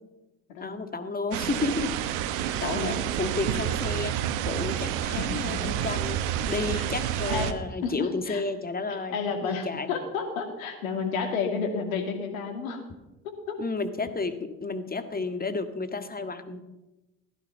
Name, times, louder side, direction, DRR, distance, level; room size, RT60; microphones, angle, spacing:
voice 1, 0.6-2.2 2.5-4.2 4.5-10.0 13.6-16.6, left 3 dB, 20° left, 9 dB, 1.9 m, -32 dB
sound 1, 1.3-7.5, right 10 dB, 60° right, 1.2 m, -29 dB
voice 2, 2.6-3.0 5.2-5.6 6.7-6.9 7.3-7.5 7.8-8.4 8.9-12.8 13.2-13.6, left 5 dB, 75° left, 5 dB, 2.5 m, -31 dB
17.0 x 14.0 x 5.8 m, 1.0 s
figure-of-eight pair, 50°, 42 cm